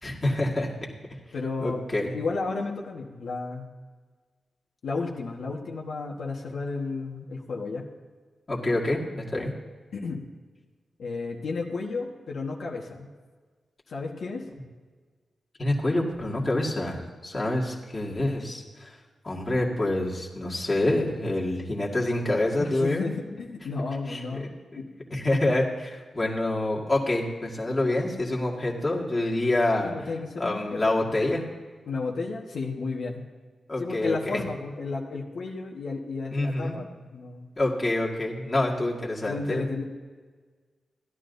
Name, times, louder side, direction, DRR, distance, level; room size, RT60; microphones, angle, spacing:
voice 1, 0.0-0.7 1.6-2.1 8.5-9.5 15.6-18.9 19.2-23.0 24.1-24.8 25.1-29.9 30.4-31.4 33.7-34.4 36.3-36.8 37.6-39.6, left 1 dB, 25° left, -3 dB, 2.0 m, -27 dB
voice 2, 1.3-1.8 2.1-3.7 4.8-7.9 9.3-9.4 9.9-10.2 11.0-13.1 13.9-14.4 22.6-24.8 29.8-30.8 31.9-33.2 33.8-37.5 39.2-39.8, left 3 dB, 70° left, -2 dB, 1.4 m, -33 dB
16.0 x 11.5 x 2.7 m, 1.5 s
wide cardioid pair, 110°, 0 cm